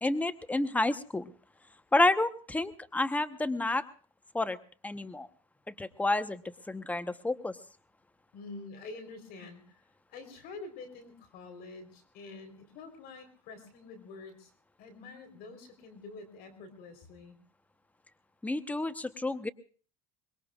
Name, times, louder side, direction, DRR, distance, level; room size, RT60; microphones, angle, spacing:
voice 1, 0.0-1.3 1.9-3.8 4.3-4.6 4.8-5.3 5.7-7.6 18.4-19.5, left 2 dB, 10° left, 12 dB, 1.0 m, -30 dB
voice 2, 8.3-9.8 10.1-14.5 14.8-17.4, left 3 dB, 60° left, 8 dB, 4.0 m, -47 dB
24.0 x 21.0 x 2.4 m, 0.39 s
supercardioid pair, 100°, 18 cm